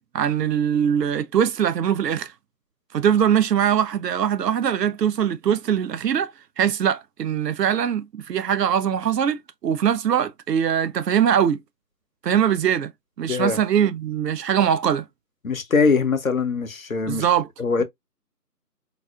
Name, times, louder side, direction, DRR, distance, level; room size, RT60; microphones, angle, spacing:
voice 1, 0.0-2.3 2.9-6.3 6.6-11.6 12.2-12.9 13.2-15.1 17.1-17.5, right 9 dB, 85° right, 0.6 m, -22 dB
voice 2, 13.3-13.6 15.4-17.2 17.6-17.8, left 4 dB, 60° left, 0.8 m, -22 dB
4.0 x 2.2 x 2.2 m
figure-of-eight pair, 175°, 48 cm